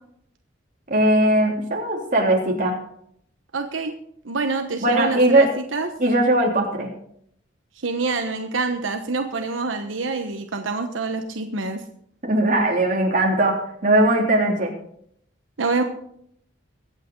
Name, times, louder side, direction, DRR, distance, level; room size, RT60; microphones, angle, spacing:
voice 1, 0.9-2.8 4.8-5.5 6.0-6.9 12.2-14.7, right 1 dB, 45° right, 0 dB, 3.2 m, -19 dB
voice 2, 3.5-4.0 4.2-5.9 7.8-11.8 15.6-15.8, right 3 dB, 90° right, 5 dB, 1.1 m, -26 dB
22.5 x 8.5 x 3.9 m, 0.69 s
head